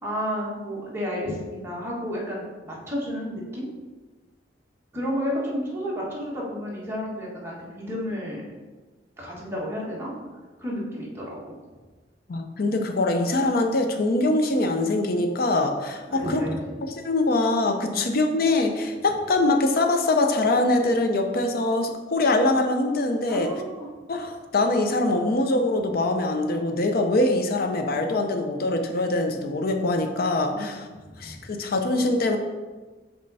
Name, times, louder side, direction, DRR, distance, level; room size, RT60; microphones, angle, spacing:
voice 1, 0.0-3.7 4.9-8.4 9.2-10.1 10.6-11.6 16.1-16.7 17.9-18.1 23.3-23.9 30.5-30.8 31.1-31.3, equal, 15° right, -5 dB, 1.5 m, -31 dB
voice 2, 12.3-16.4 16.8-23.5 24.1-30.8 31.2-32.4, left 2 dB, 55° left, 5 dB, 0.5 m, -23 dB
5.3 x 4.4 x 4.0 m, 1.3 s
head